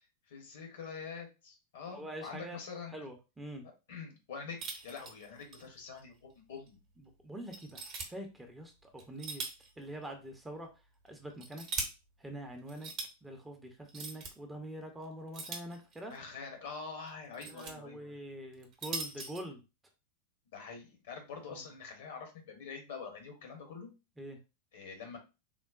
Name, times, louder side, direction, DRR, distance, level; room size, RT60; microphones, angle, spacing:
voice 1, 0.3-3.1 3.6-6.8 16.1-18.1 20.5-23.9 24.7-25.2, left 5 dB, 55° left, 3 dB, 1.0 m, -45 dB
voice 2, 1.9-2.6 2.9-3.6 7.0-9.4 9.8-10.7 11.0-11.7 12.2-12.9 13.2-16.1 17.4-19.6 21.4-21.6 24.2-24.4, right 1 dB, 10° right, 4 dB, 0.6 m, -45 dB
sound 1, 4.6-5.7 6.0-6.1 6.7-6.8 7.5-8.1 9.0-9.7 10.0-10.1 11.1-11.9 12.7-13.1 13.9-14.3 15.3-16.2 17.1-17.7 18.5-19.4, right 4 dB, 35° right, 0.8 m, -40 dB
3.7 x 2.1 x 2.4 m, 0.28 s
figure-of-eight pair, 90°, 0 cm